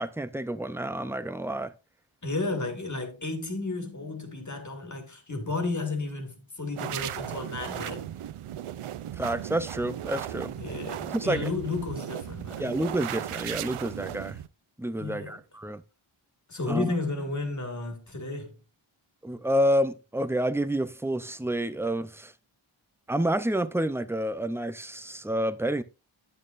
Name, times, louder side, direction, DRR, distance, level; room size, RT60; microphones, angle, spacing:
voice 1, 0.0-1.7 9.2-10.5 11.1-11.5 12.6-14.4 14.8-15.8 16.7-16.9 19.2-22.3 23.1-25.8, right 1 dB, 5° right, 0.5 m, -29 dB
voice 2, 2.2-8.1 10.6-12.7 15.0-15.4 16.5-18.6, left 3 dB, 35° left, 1.8 m, -33 dB
sound 1, 6.8-14.5, right 11 dB, 80° right, 0.6 m, -36 dB
8.7 x 8.6 x 2.5 m
wide cardioid pair, 85°, 50 cm